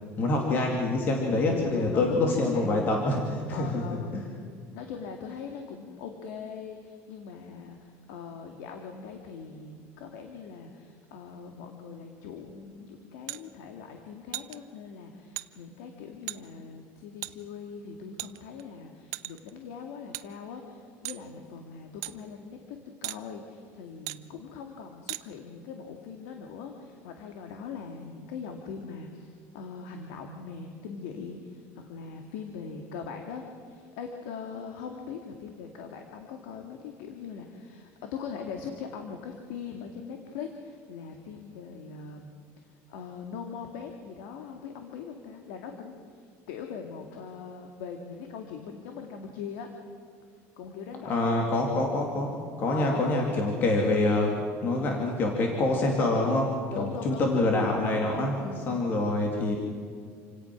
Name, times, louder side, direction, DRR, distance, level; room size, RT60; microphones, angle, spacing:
voice 1, 0.2-4.3 51.0-54.3 54.6-58.4 58.7-59.5, left 2 dB, 30° left, 1 dB, 2.6 m, -26 dB
voice 2, 1.7-2.8 3.5-4.3 4.7-42.3 42.6-49.7 50.6-51.5 52.7-53.4 56.7-57.2 58.4-58.7, left 6 dB, 85° left, 3 dB, 2.3 m, -41 dB
sound 1, 13.3-13.4 14.3-14.6 15.4-15.5 16.3-16.4 17.2-17.3 18.2-18.6 19.1-19.5 20.1-20.3 21.0-21.2 22.0-22.1 23.0-23.2 24.1-24.2 25.1-25.2, right 20 dB, 55° right, 0.7 m, -36 dB
28.5 x 17.5 x 6.1 m, 2.1 s
cardioid pair, 180°, 7 cm